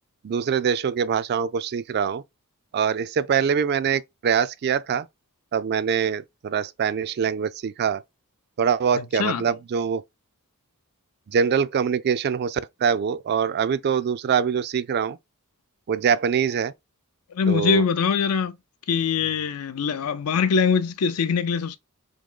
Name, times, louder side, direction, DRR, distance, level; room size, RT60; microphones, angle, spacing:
voice 1, 0.2-2.2 2.7-5.1 5.5-8.0 8.6-10.0 11.3-15.2 15.9-16.7 17.5-17.8, right 7 dB, 45° right, 0.3 m, -24 dB
voice 2, 8.9-9.4 17.3-18.6 18.9-21.8, left 6 dB, 70° left, 0.5 m, -23 dB
3.7 x 3.0 x 3.6 m
head